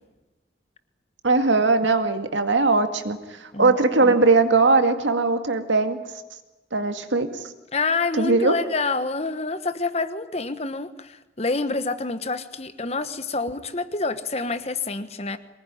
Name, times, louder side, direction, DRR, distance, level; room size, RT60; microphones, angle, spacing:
voice 1, 1.2-6.0 6.7-7.5 8.2-8.6, right 3 dB, 75° right, 8 dB, 2.1 m, -20 dB
voice 2, 3.5-4.1 7.7-15.4, left 3 dB, 35° left, 11 dB, 1.2 m, -27 dB
23.5 x 20.0 x 10.0 m, 1.1 s
head